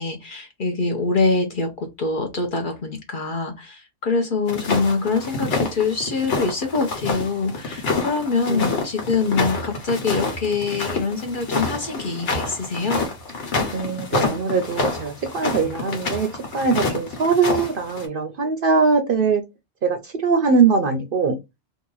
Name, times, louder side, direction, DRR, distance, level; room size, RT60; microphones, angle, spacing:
voice 1, 0.0-13.0, left 4 dB, 50° left, 0.8 m, -24 dB
sound 1, 4.5-18.1, left 3 dB, 70° left, 1.4 m, -27 dB
voice 2, 8.5-8.8 13.7-19.4 19.8-21.4, right 5 dB, 55° right, 0.7 m, -21 dB
2.9 x 2.4 x 3.8 m
omnidirectional pair, 1.3 m